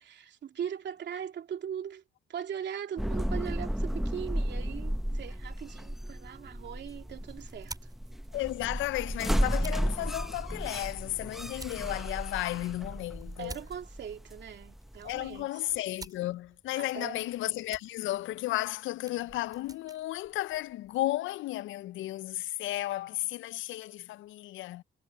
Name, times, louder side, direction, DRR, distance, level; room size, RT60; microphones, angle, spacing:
voice 1, 0.0-2.0 2.3-7.9 13.4-15.6 16.8-17.2, right 8 dB, 65° right, 3.0 m, -40 dB
sound 1, 3.0-15.4, equal, ahead, 0.7 m, -34 dB
sound 2, 6.6-21.1, right 2 dB, 20° right, 5.9 m, -53 dB
voice 2, 8.3-13.6 15.0-24.8, left 16 dB, 75° left, 0.4 m, -34 dB
cardioid pair, 90°, 20 cm